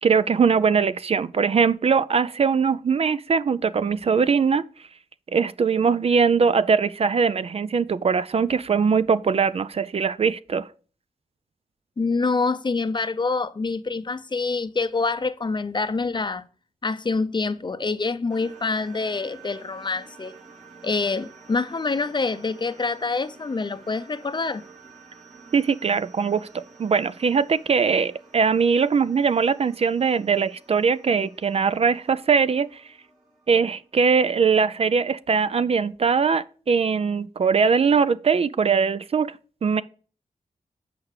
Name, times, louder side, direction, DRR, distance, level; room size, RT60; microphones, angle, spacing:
voice 1, 0.0-4.6 5.3-10.7 25.5-32.8 33.5-39.4 39.6-39.8, right 5 dB, 50° right, 0.4 m, -21 dB
voice 2, 12.0-16.4 16.8-20.3 20.8-24.6, left 4 dB, 35° left, 0.6 m, -26 dB
sound 1, 18.3-34.2, right 4 dB, 65° right, 3.7 m, -50 dB
8.1 x 4.7 x 4.8 m
cardioid pair, 65°, 14 cm